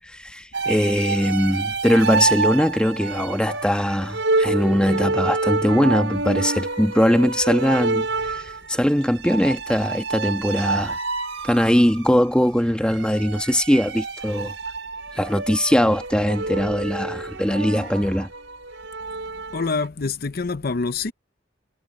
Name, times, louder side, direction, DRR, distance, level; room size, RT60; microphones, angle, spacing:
voice 1, 0.1-11.0 11.4-14.5 15.1-18.3, equal, 5° left, 1.4 m, -21 dB
sound 1, 0.5-19.9, right 3 dB, 80° right, 5.0 m, -28 dB
voice 2, 19.5-21.1, left 4 dB, 55° left, 0.7 m, -26 dB
head